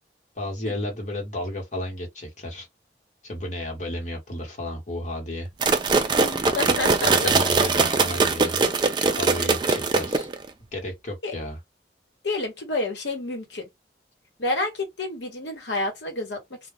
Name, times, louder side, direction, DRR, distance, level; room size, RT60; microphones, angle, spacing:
voice 1, 0.3-2.7 3.2-5.5 7.0-8.6 9.2-10.3 10.7-11.6, left 1 dB, 40° left, 1.2 m, -32 dB
sound 1, 5.6-10.5, right 4 dB, 25° right, 0.3 m, -21 dB
voice 2, 6.1-7.1 11.2-11.3 12.2-13.6 14.4-16.4, left 2 dB, 80° left, 1.0 m, -29 dB
2.3 x 2.2 x 3.3 m
head